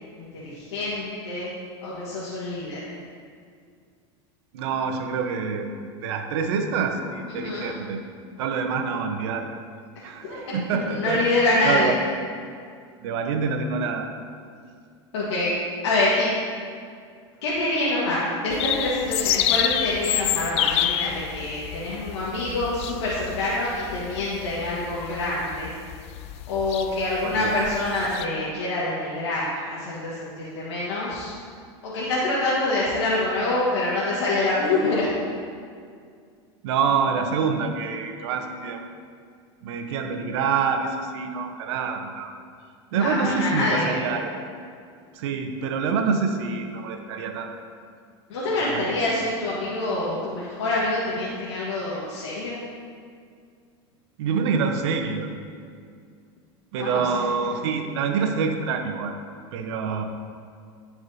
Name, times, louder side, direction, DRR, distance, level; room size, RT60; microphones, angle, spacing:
voice 1, 0.3-1.5 1.8-2.9 7.3-7.7 10.3-10.4 10.7-11.9 15.1-15.5 15.8-16.3 17.4-25.7 26.5-31.3 31.8-35.1 42.9-44.0 48.3-52.5 56.8-57.2, left 2 dB, 85° left, -7 dB, 1.5 m, -26 dB
voice 2, 4.5-8.0 8.4-9.5 10.0-11.9 13.0-14.1 27.2-27.6 36.6-38.8 39.6-42.3 42.9-44.4 45.1-47.5 48.6-49.0 54.2-55.3 56.7-59.1 59.5-60.0, right 5 dB, 75° right, 5 dB, 0.9 m, -26 dB
sound 1, 18.5-28.3, left 12 dB, 45° left, 0.4 m, -29 dB
13.5 x 4.8 x 2.7 m, 2.2 s
supercardioid pair, 110°, 14 cm